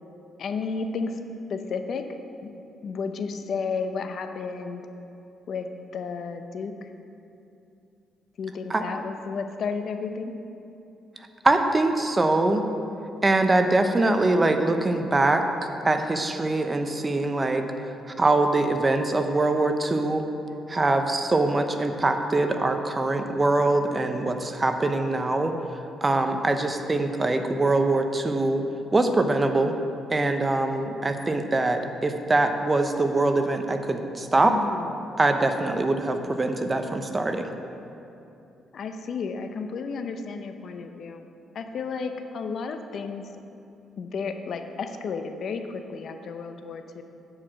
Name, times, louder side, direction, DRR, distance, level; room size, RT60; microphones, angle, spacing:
voice 1, 0.4-1.2 1.5-2.0 2.4-2.5 2.8-4.8 5.5-5.7 5.9-6.9 8.4-10.4 34.4-34.9 38.7-41.3 41.5-43.3 44.0-47.0, left 5 dB, 60° left, 7 dB, 0.7 m, -32 dB
voice 2, 11.4-12.6 13.2-15.4 15.8-17.6 18.2-20.2 20.7-25.5 26.0-28.6 28.9-29.7 30.1-34.6 35.2-37.5, right 2 dB, 25° right, 6 dB, 0.8 m, -23 dB
9.8 x 4.9 x 7.6 m, 2.8 s
cardioid pair, 90°, 0 cm